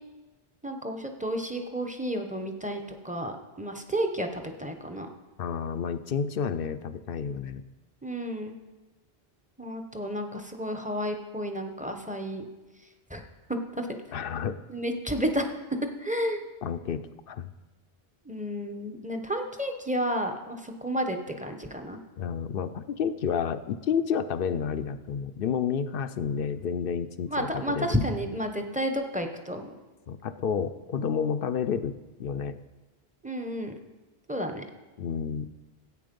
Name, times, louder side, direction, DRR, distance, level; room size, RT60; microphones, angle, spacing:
voice 1, 0.6-5.1 8.0-8.5 9.6-12.4 13.1-13.2 13.5-13.9 14.7-15.5 16.0-16.4 18.2-22.0 27.3-29.7 33.2-33.7 34.3-34.6, equal, 10° right, 4 dB, 0.8 m, -31 dB
voice 2, 5.4-7.6 14.1-14.6 16.6-17.5 22.2-27.9 30.1-32.6 35.0-35.5, left 7 dB, 65° left, 11 dB, 0.7 m, -30 dB
13.0 x 8.5 x 5.3 m, 1.2 s
omnidirectional pair, 1.0 m